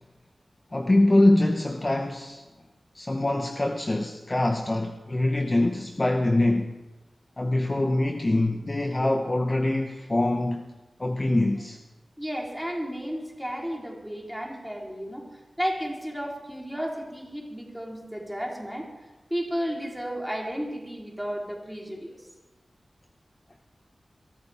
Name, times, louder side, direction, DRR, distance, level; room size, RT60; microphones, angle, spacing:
voice 1, 0.7-2.4 2.9-6.7 7.4-10.7 11.0-11.8, left 1 dB, 30° left, 4 dB, 1.0 m, -24 dB
voice 2, 12.2-15.3 15.6-18.9 19.3-22.2, equal, ahead, -2 dB, 3.6 m, -33 dB
22.5 x 13.5 x 3.5 m, 1.1 s
wide cardioid pair, 75°, 0 cm